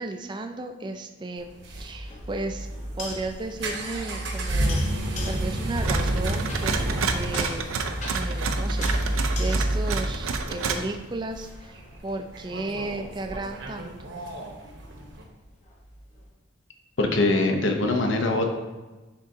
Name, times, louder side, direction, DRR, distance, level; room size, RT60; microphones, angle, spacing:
voice 1, 0.0-2.7 3.0-7.6 8.1-14.1, right 2 dB, 20° right, 5 dB, 0.3 m, -34 dB
sound 1, 1.4-15.2, right 1 dB, 60° right, 1.0 m, -30 dB
sound 2, 1.7-10.9 11.4-16.3, equal, 35° left, 0.8 m, -39 dB
sound 3, 5.8-10.8, right 5 dB, 80° right, 0.5 m, -30 dB
voice 2, 17.0-18.5, left 2 dB, 65° left, 4 dB, 0.8 m, -22 dB
10.5 x 3.7 x 2.7 m, 1.2 s
head